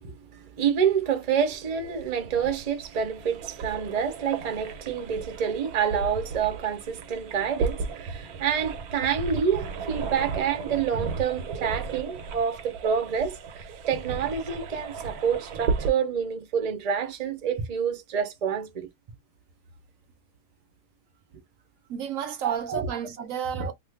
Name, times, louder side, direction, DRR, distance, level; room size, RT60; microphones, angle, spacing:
voice 1, 0.0-18.9 22.4-22.9 23.5-23.7, right 7 dB, 40° right, 0.6 m, -28 dB
sound 1, 1.5-15.9, right 4 dB, 85° right, 1.1 m, -35 dB
voice 2, 21.9-23.7, right 8 dB, 70° right, 0.9 m, -32 dB
2.6 x 2.4 x 3.4 m
omnidirectional pair, 1.6 m